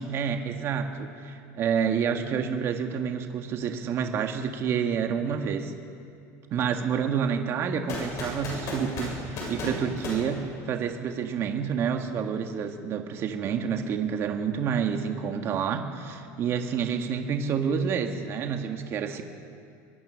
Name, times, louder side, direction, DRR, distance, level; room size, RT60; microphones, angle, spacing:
voice 1, 0.0-5.7 6.5-19.2, right 7 dB, 30° right, 5 dB, 1.8 m, -29 dB
sound 1, 7.9-11.1, left 2 dB, 40° left, 7.4 m, -35 dB
23.0 x 22.5 x 6.5 m, 2.4 s
cardioid pair, 165°, 8 cm